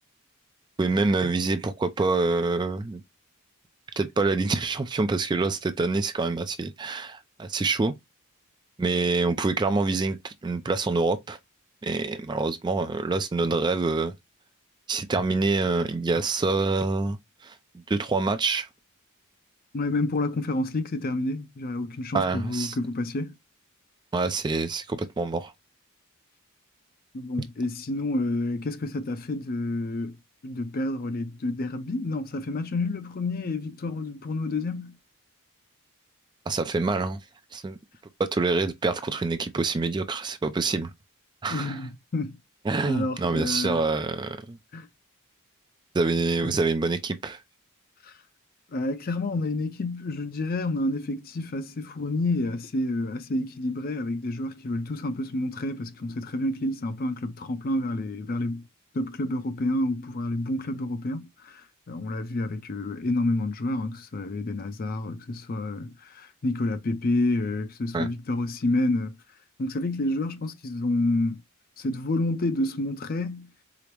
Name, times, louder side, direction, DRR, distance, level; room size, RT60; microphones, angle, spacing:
voice 1, 0.8-3.0 4.0-7.9 8.8-11.4 11.8-14.1 14.9-17.2 17.4-18.7 22.1-22.8 24.1-25.5 36.5-37.2 37.5-37.8 38.2-40.9 41.4-41.8 42.7-44.6 45.9-47.4 67.9-68.1, right 3 dB, 20° right, 0.3 m, -26 dB
voice 2, 19.7-23.3 27.1-30.2 30.4-34.9 41.5-42.4 42.9-43.8 44.7-44.9 46.4-46.6 48.0-48.1 48.7-58.6 58.9-69.1 69.6-71.4 71.8-73.5, left 2 dB, 40° left, 0.5 m, -29 dB
4.9 x 2.0 x 2.9 m
head